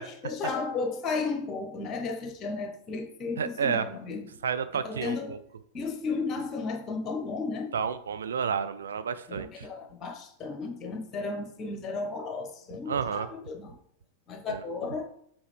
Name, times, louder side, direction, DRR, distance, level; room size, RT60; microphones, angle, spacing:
voice 1, 0.0-4.3 4.7-5.4 5.7-7.7 9.3-13.7 14.3-15.1, left 4 dB, 30° left, 5 dB, 1.2 m, -34 dB
voice 2, 3.4-3.9 4.4-5.4 7.7-9.7 12.9-13.3 14.5-14.6, right 7 dB, 65° right, 11 dB, 0.4 m, -30 dB
7.2 x 4.2 x 3.3 m, 0.68 s
figure-of-eight pair, 90°, 0 cm